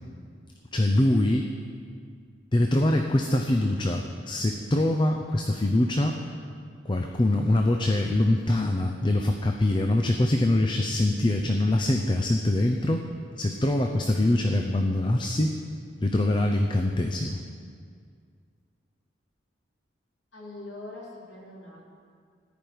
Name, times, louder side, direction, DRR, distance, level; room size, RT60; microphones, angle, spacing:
voice 1, 0.7-1.5 2.5-6.2 6.9-13.1 13.4-15.6 16.0-17.4, left 1 dB, 25° left, 3 dB, 0.5 m, -24 dB
voice 2, 20.3-21.9, left 2 dB, 80° left, -4 dB, 2.7 m, -42 dB
14.5 x 5.2 x 9.4 m, 2.2 s
head